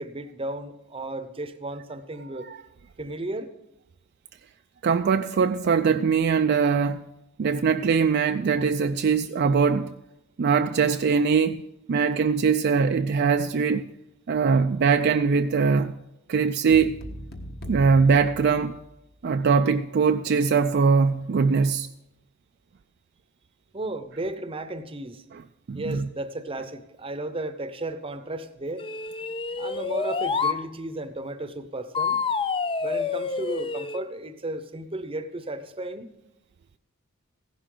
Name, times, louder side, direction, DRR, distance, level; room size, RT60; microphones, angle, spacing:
voice 1, 0.0-2.5 3.0-3.5 23.7-25.2 25.7-28.8 29.6-32.2 32.8-36.1, right 2 dB, 25° right, 0.7 m, -34 dB
voice 2, 4.8-7.0 7.4-9.9 10.4-11.6 11.9-13.9 14.3-15.9 16.3-17.0 17.7-18.8 19.2-21.9 25.3-25.4 25.7-26.0, right 5 dB, 50° right, 0.4 m, -22 dB
sound 1, 16.7-19.2, equal, 45° left, 1.4 m, -39 dB
sound 2, 28.8-30.6 31.9-34.0, left 5 dB, 25° left, 0.4 m, -28 dB
15.5 x 11.5 x 3.8 m
head